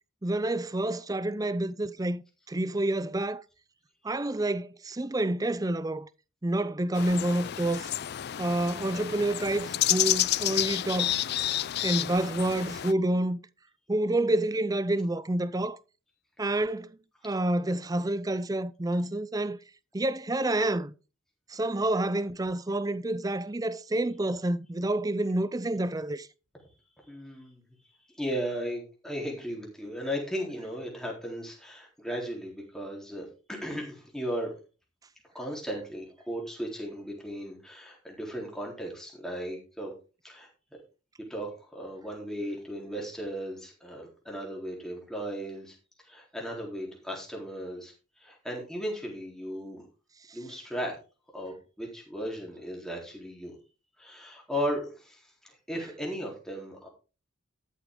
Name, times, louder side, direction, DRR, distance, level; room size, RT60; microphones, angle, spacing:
voice 1, 0.2-3.4 4.0-6.1 6.4-7.9 8.4-11.2 11.8-13.4 13.9-15.8 16.4-16.9 17.2-19.6 19.9-20.9 21.5-26.3, right 1 dB, 20° right, 0.5 m, -28 dB
sound 1, 6.9-12.9, left 13 dB, 55° left, 0.4 m, -30 dB
voice 2, 27.1-27.6 28.1-34.5 35.3-39.9 40.2-40.5 41.3-45.7 46.1-49.9 50.3-51.0 51.3-53.6 54.0-56.9, equal, 5° left, 4.0 m, -36 dB
13.0 x 8.3 x 3.8 m
head